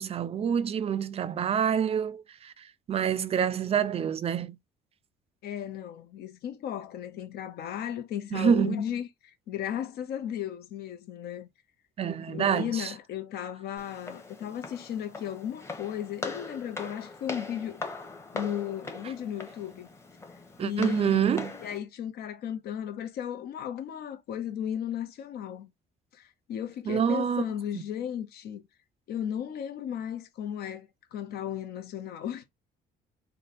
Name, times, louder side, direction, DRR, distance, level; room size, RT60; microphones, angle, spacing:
voice 1, 0.0-4.6 8.3-8.8 12.0-12.9 20.6-21.5 26.9-27.5 27.7-27.8, right 8 dB, 35° right, 0.4 m, -27 dB
voice 2, 5.4-11.5 12.3-17.8 18.3-19.9 20.6-21.3 21.6-25.7 26.1-28.6 29.1-32.4, left 9 dB, 70° left, 0.9 m, -35 dB
Walk footsteps, 13.8-21.8, left 3 dB, 15° left, 1.0 m, -41 dB
3.4 x 2.2 x 4.1 m
cardioid pair, 110°, 17 cm